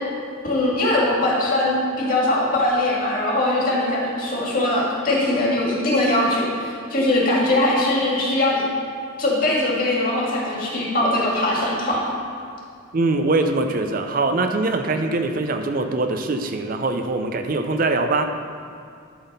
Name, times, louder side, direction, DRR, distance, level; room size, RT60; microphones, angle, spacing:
voice 1, 0.4-8.6 9.2-12.1, left 1 dB, 45° left, -4 dB, 2.0 m, -21 dB
voice 2, 12.9-18.3, right 2 dB, 45° right, 6 dB, 0.5 m, -22 dB
12.0 x 4.1 x 5.4 m, 2.3 s
head